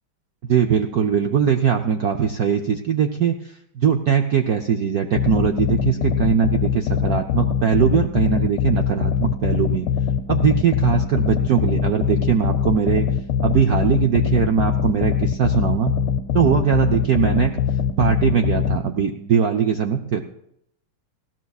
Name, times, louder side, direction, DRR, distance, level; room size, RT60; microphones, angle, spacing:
voice 1, 0.5-3.4 3.8-9.9 10.3-13.1 13.4-15.9 16.3-17.5 18.0-20.2, right 7 dB, 80° right, 4 dB, 0.8 m, -20 dB
sound 1, 5.1-18.8, left 8 dB, 90° left, 1.6 m, -23 dB
20.0 x 16.0 x 2.4 m, 0.76 s
omnidirectional pair, 2.4 m